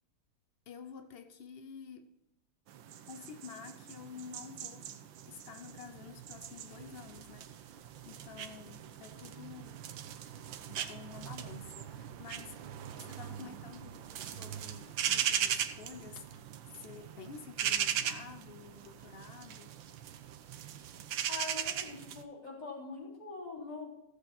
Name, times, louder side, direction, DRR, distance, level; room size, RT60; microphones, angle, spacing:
voice 1, 0.7-2.1 3.1-5.0 5.3-9.8 10.7-12.6 13.0-19.7, left 6 dB, 90° left, 0.5 m, -50 dB
sound 1, 2.7-22.2, right 9 dB, 70° right, 1.5 m, -39 dB
voice 2, 21.3-23.9, left 3 dB, 20° left, 3.5 m, -43 dB
15.0 x 8.0 x 4.3 m
omnidirectional pair, 2.3 m